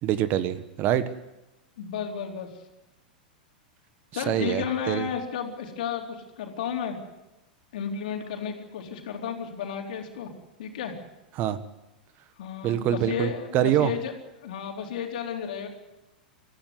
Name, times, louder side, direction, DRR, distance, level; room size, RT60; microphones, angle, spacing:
voice 1, 0.0-1.1 4.3-5.1 11.4-11.6 12.6-13.9, right 11 dB, 40° right, 13 dB, 1.4 m, -25 dB
voice 2, 1.8-2.5 4.1-7.0 7.7-10.3 10.6-10.9 12.4-14.1 14.4-15.7, left 7 dB, 65° left, 2 dB, 4.0 m, -33 dB
23.0 x 14.5 x 9.6 m, 0.99 s
hypercardioid pair, 100°, 5 cm